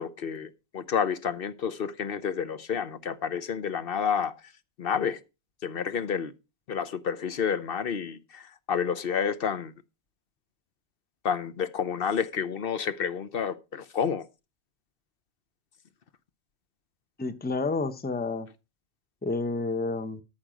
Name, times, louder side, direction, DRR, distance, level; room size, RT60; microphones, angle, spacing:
voice 1, 0.0-4.5 4.8-5.2 5.6-6.3 6.7-9.7 11.2-14.3, left 7 dB, 65° left, 1.0 m, -30 dB
voice 2, 17.2-18.5 19.2-20.2, left 3 dB, 10° left, 0.7 m, -30 dB
14.0 x 5.8 x 5.1 m
omnidirectional pair, 1.0 m